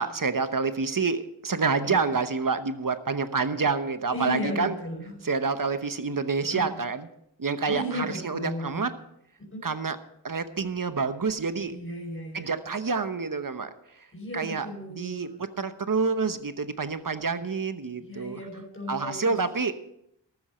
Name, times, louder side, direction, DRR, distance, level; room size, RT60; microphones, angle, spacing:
voice 1, 0.0-4.7 5.2-7.1 7.4-8.9 9.6-10.0 10.2-11.8 12.3-13.7 14.3-14.7 15.0-18.4 18.9-19.7, right 4 dB, 50° right, 10 dB, 1.1 m, -28 dB
voice 2, 1.8-2.1 4.1-5.2 6.4-6.8 7.7-8.9 9.4-9.6 11.7-12.6 14.1-15.4 18.0-19.4, left 1 dB, 30° left, 0 dB, 5.2 m, -35 dB
13.5 x 13.5 x 4.4 m, 0.76 s
wide cardioid pair, 55°, 43 cm